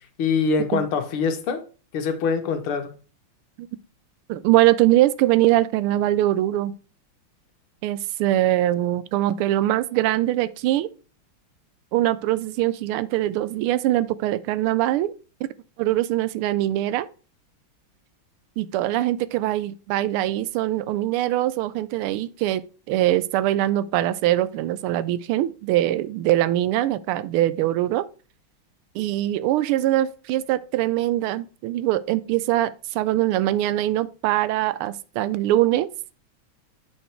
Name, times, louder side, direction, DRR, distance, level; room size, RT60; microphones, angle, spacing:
voice 1, 0.2-1.6 1.9-2.9, left 5 dB, 80° left, 1.9 m, -24 dB
voice 2, 4.3-6.7 7.8-10.9 11.9-15.1 15.8-17.1 18.6-22.6 22.9-28.1 28.9-35.9, right 14 dB, 90° right, 1.5 m, -22 dB
8.1 x 4.4 x 4.5 m
omnidirectional pair, 2.3 m